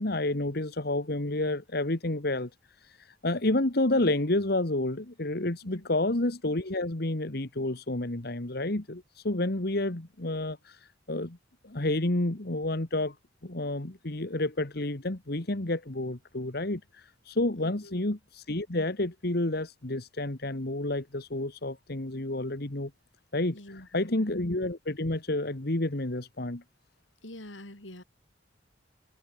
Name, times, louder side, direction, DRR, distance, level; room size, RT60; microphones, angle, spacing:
voice 1, 0.0-2.5 2.8-11.4 11.6-13.2 13.4-22.9 23.3-26.6, left 2 dB, 55° left, 1.7 m, -30 dB
voice 2, 17.6-18.1 23.5-24.3 27.2-28.0, left 1 dB, 80° left, 7.3 m, -46 dB
open air
head